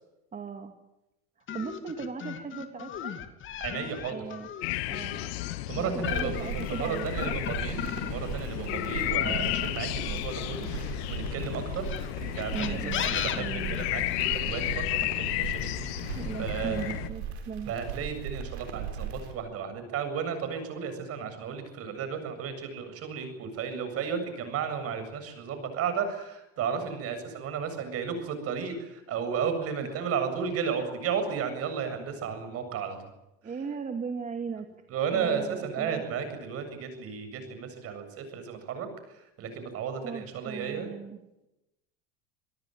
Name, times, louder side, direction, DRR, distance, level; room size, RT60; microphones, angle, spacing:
voice 1, 0.3-0.7 1.5-3.2 4.1-4.5 4.9-5.3 5.7-7.4 8.6-9.5 12.5-13.7 16.2-17.7 29.8-29.9 33.4-34.7 35.1-36.0 40.0-41.4, right 5 dB, 25° right, 5 dB, 2.5 m, -38 dB
sound 1, 1.5-8.3 8.7-11.1 11.8-14.4, left 9 dB, 40° left, 2.7 m, -36 dB
voice 2, 3.6-4.2 5.7-11.9 12.2-16.9 17.7-33.0 34.9-38.9 39.4-40.9, right 6 dB, 50° right, 9 dB, 7.6 m, -34 dB
sound 2, 4.6-17.1, left 18 dB, 80° left, 1.3 m, -33 dB
sound 3, 6.1-19.3, right 7 dB, 85° right, 6.7 m, -38 dB
27.0 x 18.0 x 9.3 m, 0.92 s
supercardioid pair, 115°, 31 cm